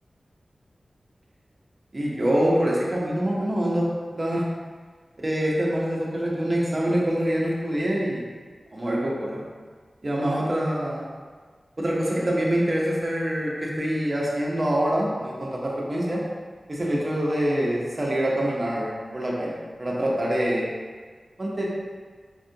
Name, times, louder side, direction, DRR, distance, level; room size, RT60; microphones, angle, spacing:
voice 1, 1.9-3.9 4.2-4.4 5.2-8.3 8.7-9.4 10.0-11.1 11.8-16.2 16.7-20.7 21.4-21.6, right 1 dB, 35° right, -4 dB, 0.7 m, -25 dB
4.3 x 2.4 x 2.7 m, 1.5 s
wide cardioid pair, 90°, 0 cm